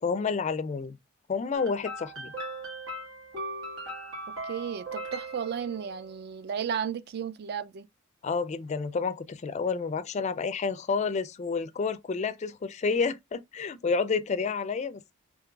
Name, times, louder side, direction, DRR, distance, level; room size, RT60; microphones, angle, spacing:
voice 1, 0.0-1.0 1.3-2.3 8.2-15.1, left 5 dB, 35° left, 0.3 m, -30 dB
sound 1, 1.5-6.2, right 1 dB, 85° right, 1.7 m, -39 dB
voice 2, 4.4-7.8, right 8 dB, 50° right, 0.4 m, -34 dB
3.7 x 3.1 x 2.3 m
head